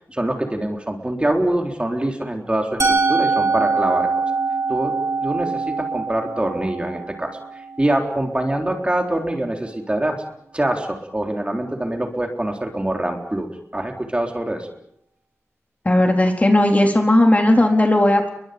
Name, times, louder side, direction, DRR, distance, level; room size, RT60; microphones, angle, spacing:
voice 1, 0.1-4.2 4.7-4.9 5.2-10.2 10.5-14.7, right 1 dB, 20° right, 2 dB, 3.8 m, -24 dB
Musical instrument, 2.8-8.7, right 4 dB, 80° right, 4.1 m, -23 dB
voice 2, 15.9-18.3, left 1 dB, 30° left, 2 dB, 4.1 m, -16 dB
30.0 x 23.0 x 5.3 m, 0.72 s
wide cardioid pair, 75°, 5 cm